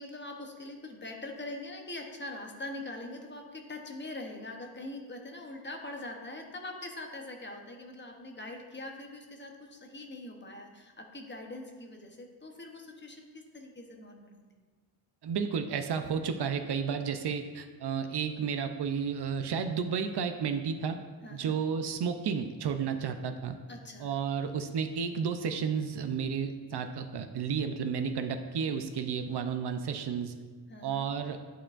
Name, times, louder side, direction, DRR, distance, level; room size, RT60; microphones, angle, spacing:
voice 1, 0.0-14.4 21.2-21.6 23.7-24.1 30.7-31.1, left 2 dB, 25° left, 2 dB, 0.8 m, -43 dB
voice 2, 15.2-21.0 21.3-23.6 24.0-30.3 30.8-31.4, right 6 dB, 65° right, 7 dB, 0.6 m, -32 dB
11.0 x 4.5 x 2.5 m, 1.5 s
wide cardioid pair, 115°, 44 cm